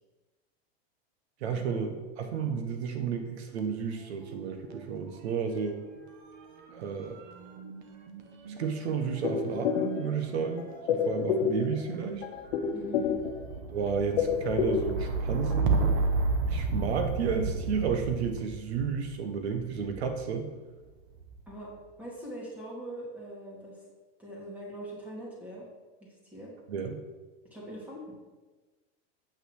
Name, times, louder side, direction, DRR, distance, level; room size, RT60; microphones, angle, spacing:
voice 1, 1.4-5.8 6.7-7.2 8.5-12.3 13.7-15.8 16.5-20.5 26.7-27.0, right 6 dB, 85° right, 6 dB, 1.4 m, -32 dB
sound 1, 3.5-4.9 5.1-20.2 21.0-21.5, right 3 dB, 45° right, 1.1 m, -34 dB
sound 2, 9.2-10.3 10.6-12.0 12.2-13.6 13.9-15.2 15.5-15.6, left 7 dB, 80° left, 1.0 m, -29 dB
voice 2, 12.7-13.1 21.5-21.7 22.0-23.8 24.2-25.7 26.0-26.5 27.5-28.3, right 1 dB, 5° right, -4 dB, 2.4 m, -42 dB
8.6 x 5.8 x 6.4 m, 1.2 s
supercardioid pair, 165°, 31 cm